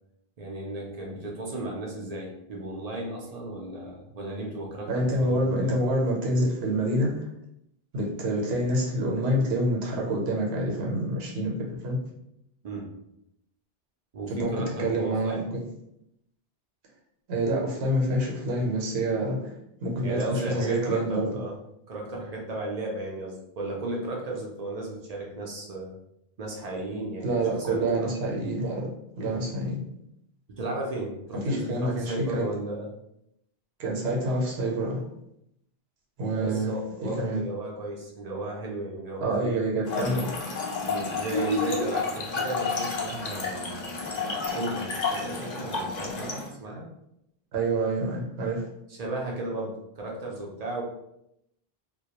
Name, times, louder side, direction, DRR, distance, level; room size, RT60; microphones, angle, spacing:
voice 1, 0.4-5.8 12.6-12.9 14.1-15.5 20.0-21.6 21.9-25.9 26.4-28.1 29.2-29.4 30.5-32.9 36.3-39.6 40.8-43.9 44.5-46.9 48.9-50.8, right 2 dB, 50° right, -2 dB, 0.5 m, -34 dB
voice 2, 4.9-7.3 7.9-12.0 14.3-15.6 17.3-19.5 19.8-21.3 27.2-28.9 29.2-29.8 31.4-32.5 33.8-35.0 36.2-36.7 37.0-37.4 39.2-40.3 47.5-48.6, right 1 dB, 80° right, -2 dB, 0.9 m, -27 dB
Trickle dribble / Fill (with liquid), 39.8-46.5, left 4 dB, 55° left, 0.5 m, -30 dB
2.2 x 2.1 x 2.8 m, 0.79 s
omnidirectional pair, 1.0 m